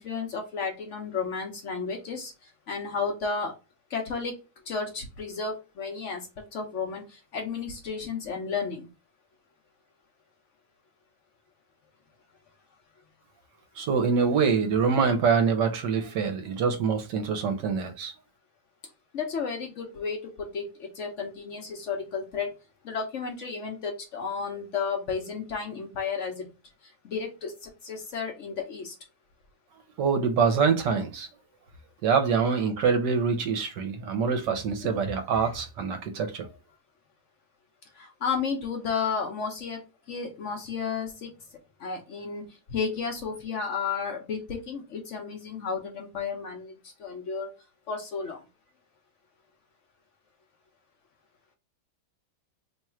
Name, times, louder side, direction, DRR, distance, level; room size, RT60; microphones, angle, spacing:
voice 1, 0.0-2.3 2.7-3.5 3.9-4.4 4.7-8.9 19.1-22.5 22.8-26.5 27.0-28.9 34.3-34.4 34.8-35.0 35.4-35.5 36.4-36.6 38.0-39.8 40.1-41.3 41.8-42.4 42.7-47.5 47.9-48.4, left 5 dB, 65° left, 0.7 m, -33 dB
voice 2, 13.8-18.1 30.0-31.3 32.0-36.5, right 5 dB, 70° right, 1.2 m, -25 dB
3.1 x 2.3 x 4.2 m
omnidirectional pair, 2.0 m